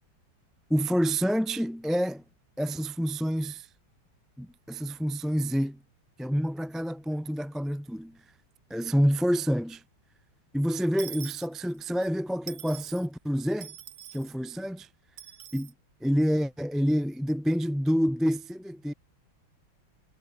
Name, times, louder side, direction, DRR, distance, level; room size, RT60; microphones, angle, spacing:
voice 1, 0.7-2.2 2.6-3.7 4.4-5.8 6.2-8.2 8.7-9.8 10.5-13.7 14.1-14.9 15.5-15.7 16.0-18.9, equal, ahead, 0.9 m, -28 dB
Dishes pots and pans / Coin (dropping), 11.0-12.1 12.5-13.1 13.6-14.3 15.2-15.7, right 10 dB, 70° right, 1.9 m, -44 dB
omnidirectional pair, 2.2 m